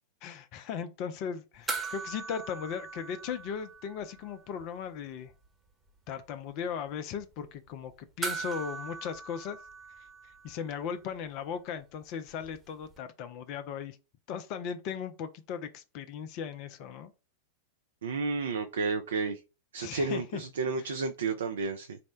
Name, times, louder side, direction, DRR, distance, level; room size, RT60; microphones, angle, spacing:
voice 1, 0.2-5.3 6.1-7.9 8.2-9.6 10.4-14.0 14.3-17.1 19.8-20.4 20.8-20.9, left 7 dB, 45° left, 0.4 m, -37 dB
sound 1, 1.7-4.3 4.6-4.7 8.2-10.8 13.0-13.1, right 4 dB, 10° right, 0.9 m, -39 dB
voice 2, 18.0-19.4 19.7-22.0, right 4 dB, 65° right, 0.4 m, -31 dB
4.1 x 2.1 x 4.4 m
figure-of-eight pair, 90°, 0 cm